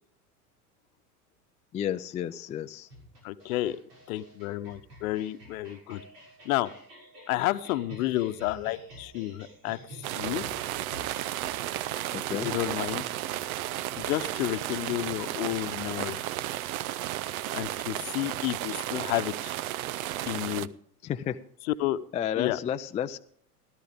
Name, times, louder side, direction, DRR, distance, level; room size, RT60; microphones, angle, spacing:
voice 1, 1.7-2.9 12.1-12.5 21.0-21.4 22.1-23.2, left 9 dB, 15° left, 8 dB, 0.4 m, -32 dB
sound 1, 2.9-15.8, equal, 80° right, 6.8 m, -50 dB
voice 2, 3.2-3.8 4.1-6.0 6.4-6.7 7.3-10.4 12.3-13.0 14.0-16.3 17.5-19.5 20.3-20.7 21.8-22.0 22.4-22.6, left 16 dB, 60° left, 12 dB, 0.9 m, -31 dB
sound 2, 10.0-20.7, right 14 dB, 65° right, 0.7 m, -33 dB
17.0 x 12.0 x 3.6 m, 0.62 s
hypercardioid pair, 90°, 47 cm